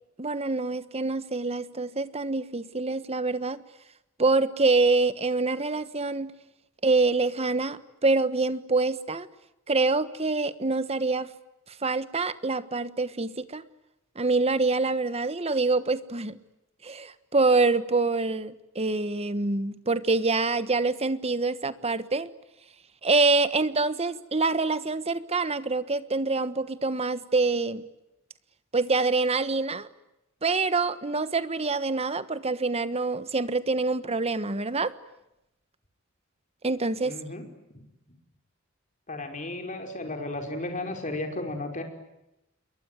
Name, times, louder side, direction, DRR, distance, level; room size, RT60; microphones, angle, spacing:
voice 1, 0.2-3.6 4.2-6.3 6.8-9.3 9.7-11.3 11.8-13.6 14.1-16.4 16.8-22.3 23.0-27.9 28.7-29.9 30.4-34.9 36.6-37.2, right 3 dB, 30° right, 13 dB, 1.3 m, -26 dB
voice 2, 37.0-37.4 37.7-37.9 39.1-41.8, left 2 dB, 40° left, 5 dB, 5.3 m, -34 dB
27.5 x 22.5 x 9.4 m, 0.89 s
head